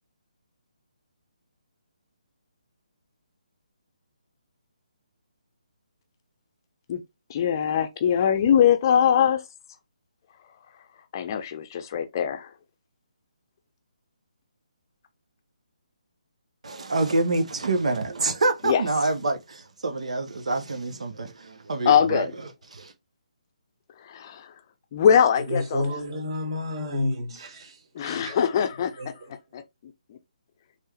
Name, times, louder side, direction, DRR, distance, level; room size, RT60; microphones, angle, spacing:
voice 1, 7.3-9.4 11.1-12.5 18.6-18.8 21.8-22.3 24.0-24.5 24.9-25.9 27.9-29.0 29.5-29.6 30.1-30.2, left 8 dB, 30° left, 0.7 m, -22 dB
voice 2, 16.6-22.3 22.7-22.9, right 2 dB, 55° right, 0.9 m, -26 dB
voice 3, 25.4-28.4 29.0-29.4, left 1 dB, 40° right, 2.0 m, -31 dB
4.5 x 3.2 x 3.2 m
figure-of-eight pair, 140°, 4 cm